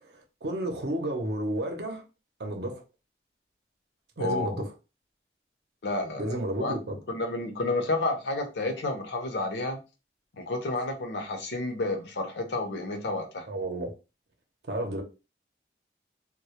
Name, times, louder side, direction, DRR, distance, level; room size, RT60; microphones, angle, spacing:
voice 1, 0.0-2.0 2.4-2.8 4.2-4.7 6.2-7.0 13.5-13.9 14.7-15.0, right 1 dB, 70° right, 0.6 m, -32 dB
voice 2, 4.2-4.7 5.8-6.3 6.6-6.7 7.1-9.8 10.4-13.4, left 2 dB, 80° left, 0.6 m, -30 dB
2.2 x 2.0 x 2.8 m
head